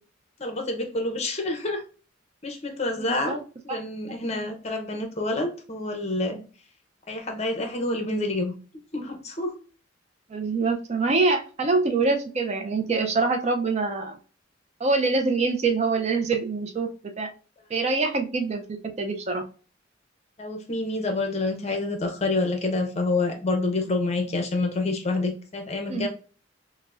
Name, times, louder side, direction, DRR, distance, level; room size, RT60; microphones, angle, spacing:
voice 1, 0.4-1.8 2.4-3.4 3.6-6.4 7.1-8.5 8.9-9.5 20.4-26.1, left 2 dB, 35° left, 4 dB, 0.6 m, -27 dB
voice 2, 3.0-3.4 3.7-3.8 10.3-14.2 14.8-17.3 17.7-19.4 25.9-26.1, right 3 dB, 35° right, 5 dB, 0.4 m, -25 dB
6.0 x 2.1 x 2.4 m, 0.38 s
head